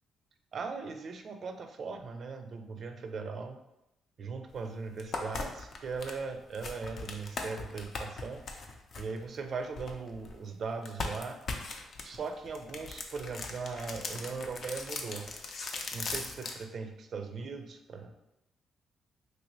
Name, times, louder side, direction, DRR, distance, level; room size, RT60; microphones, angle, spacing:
voice 1, 0.5-3.6 4.2-8.4 9.0-11.4 12.0-15.3 15.9-18.1, right 4 dB, 50° right, 7 dB, 0.4 m, -39 dB
sound 1, 4.5-4.6 5.0-10.4 10.8-16.6, left 3 dB, 60° left, 0.5 m, -39 dB
3.1 x 2.6 x 3.0 m, 0.89 s
cardioid pair, 90°, 0 cm